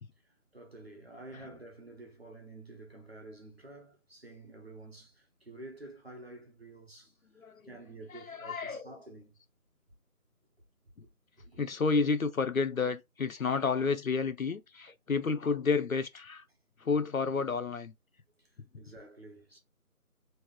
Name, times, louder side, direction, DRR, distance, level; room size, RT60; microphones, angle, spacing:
voice 1, 0.5-9.4 11.4-11.6 18.4-19.6, right 2 dB, 40° right, 1.2 m, -50 dB
voice 2, 7.4-9.0 11.6-16.4 16.8-17.9, left 4 dB, 65° left, 0.5 m, -31 dB
3.2 x 2.6 x 3.5 m
figure-of-eight pair, 180°, 45 cm